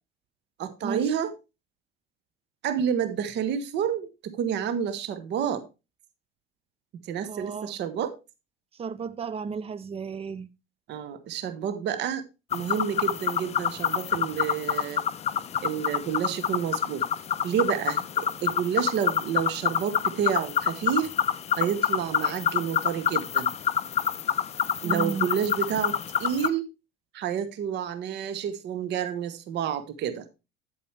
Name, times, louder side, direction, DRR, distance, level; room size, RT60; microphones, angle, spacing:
voice 1, 0.6-1.3 2.6-5.6 7.0-8.1 10.9-12.2 12.5-15.0 15.6-17.0 17.4-21.1 21.6-23.5 24.8-26.6 27.1-30.2, right 8 dB, 35° right, 1.0 m, -29 dB
voice 2, 7.3-7.7 8.8-10.5 24.8-25.3, right 5 dB, 20° right, 0.6 m, -33 dB
sound 1, 12.5-26.5, left 9 dB, 20° left, 0.5 m, -27 dB
8.8 x 8.2 x 3.2 m
figure-of-eight pair, 70°, 30 cm